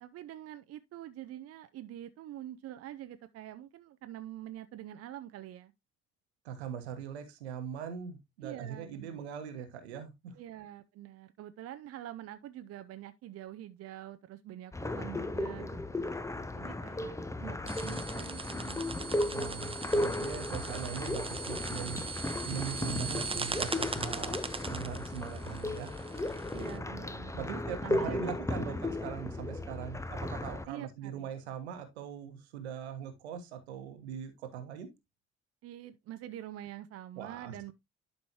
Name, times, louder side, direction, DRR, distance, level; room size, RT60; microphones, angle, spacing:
voice 1, 0.0-5.7 8.4-9.3 10.3-16.2 16.5-19.4 26.5-28.8 29.2-29.3 30.7-31.3 35.6-37.7, right 12 dB, 45° right, 0.6 m, -46 dB
voice 2, 6.4-10.4 19.3-22.0 22.4-25.9 27.3-34.9 37.2-37.5, right 8 dB, 75° right, 1.3 m, -41 dB
sound 1, 14.7-30.7, left 1 dB, 10° left, 0.8 m, -35 dB
sound 2, 17.7-26.8, right 4 dB, 15° right, 1.0 m, -40 dB
11.5 x 5.3 x 2.9 m
figure-of-eight pair, 45°, 33 cm